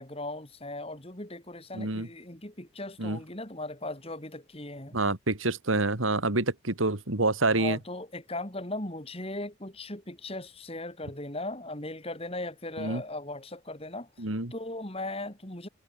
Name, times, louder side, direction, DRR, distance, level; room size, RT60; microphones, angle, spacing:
voice 1, 0.0-5.0 7.5-15.7, left 2 dB, 30° left, 4.3 m, -38 dB
voice 2, 1.7-2.1 3.0-3.2 4.9-7.8 12.8-13.0 14.2-14.5, right 2 dB, 85° right, 2.8 m, -27 dB
head